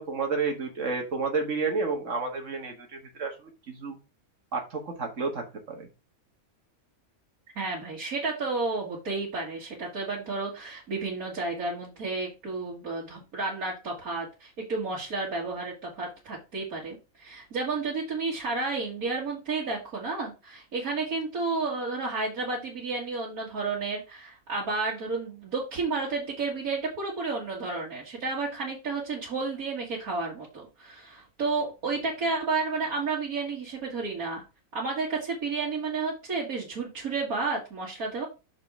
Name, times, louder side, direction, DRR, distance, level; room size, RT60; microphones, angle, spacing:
voice 1, 0.0-4.0 4.5-5.9, right 4 dB, 60° right, 3 dB, 2.0 m, -31 dB
voice 2, 7.6-34.4 34.7-38.3, right 3 dB, 90° right, -5 dB, 2.3 m, -31 dB
6.2 x 4.8 x 4.8 m, 0.28 s
omnidirectional pair, 1.5 m